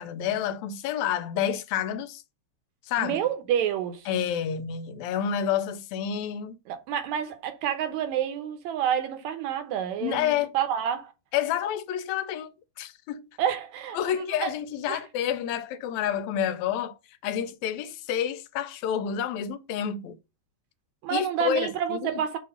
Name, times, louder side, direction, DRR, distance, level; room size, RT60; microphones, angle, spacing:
voice 1, 0.0-2.2 2.9-3.2 4.1-6.6 10.0-10.5 11.3-13.2 13.9-17.0 17.2-20.2 21.1-22.2, left 9 dB, 80° left, 1.8 m, -29 dB
voice 2, 3.0-4.1 6.7-11.1 13.4-14.0 14.4-14.5 14.9-15.0 21.0-22.4, right 9 dB, 75° right, 2.2 m, -28 dB
6.2 x 2.8 x 5.5 m
omnidirectional pair, 3.3 m